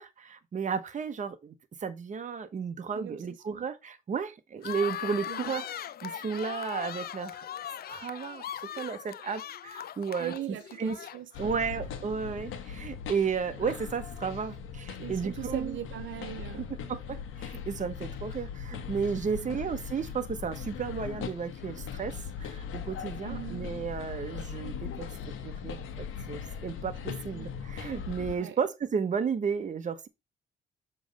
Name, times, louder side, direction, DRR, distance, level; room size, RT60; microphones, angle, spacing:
voice 1, 0.0-1.5 1.8-5.7 6.0-7.5 7.9-8.4 8.8-10.3 10.8-11.0 11.4-15.8 16.9-25.1 25.4-30.1, right 6 dB, 40° right, 1.0 m, -33 dB
voice 2, 2.9-3.6 5.3-5.5 10.2-11.7 15.0-16.7 17.1-17.2 19.3-19.6 23.2-23.6 27.1-27.5 28.4-28.6, right 12 dB, 75° right, 0.8 m, -41 dB
sound 1, 4.6-11.5, left 10 dB, 50° left, 0.4 m, -39 dB
sound 2, 11.3-28.4, left 7 dB, 85° left, 1.2 m, -39 dB
7.0 x 3.3 x 5.2 m
cardioid pair, 90°, 20 cm